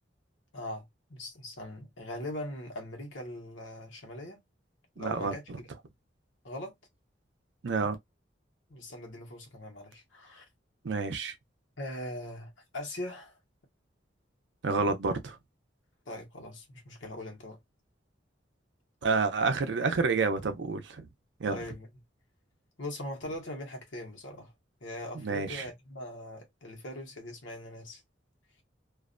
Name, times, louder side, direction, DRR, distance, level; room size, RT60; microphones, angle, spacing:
voice 1, 0.5-4.4 5.0-5.7 6.4-6.8 8.7-10.4 11.8-13.4 16.1-17.6 21.4-21.9 22.8-24.5 24.8-28.0, left 1 dB, 90° left, 1.0 m, -41 dB
voice 2, 5.0-5.6 7.6-8.0 10.8-11.3 14.6-15.4 19.0-21.1 21.4-21.6 25.2-25.7, right 4 dB, 70° right, 0.5 m, -29 dB
2.4 x 2.1 x 2.4 m
head